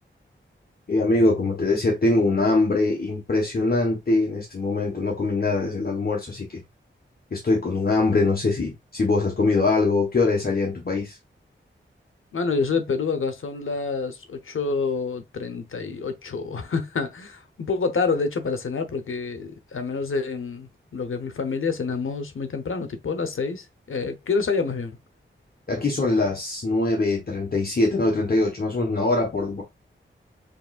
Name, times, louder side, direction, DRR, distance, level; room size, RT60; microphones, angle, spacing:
voice 1, 0.9-6.6 7.3-11.2 25.7-29.6, left 2 dB, 45° left, 1.3 m, -23 dB
voice 2, 12.3-25.0, left 4 dB, 80° left, 0.9 m, -27 dB
6.9 x 3.1 x 2.5 m
wide cardioid pair, 105°, 21 cm